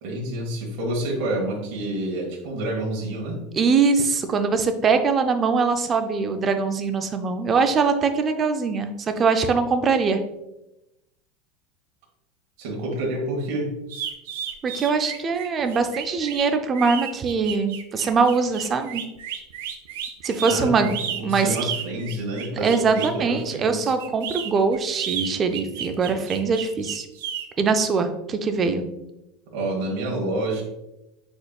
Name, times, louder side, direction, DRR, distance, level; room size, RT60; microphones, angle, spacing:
voice 1, 0.0-3.4 12.6-13.7 20.4-20.9 21.2-23.9 29.5-30.6, right 1 dB, 60° right, -2 dB, 1.4 m, -28 dB
voice 2, 3.5-10.2 14.6-19.0 20.2-21.6 22.6-27.1 27.6-28.8, right 4 dB, 25° right, 7 dB, 0.4 m, -22 dB
sound 1, 13.9-23.2 24.0-27.5, right 9 dB, 85° right, 0.5 m, -33 dB
5.1 x 4.3 x 2.3 m, 0.93 s
supercardioid pair, 160°, 0 cm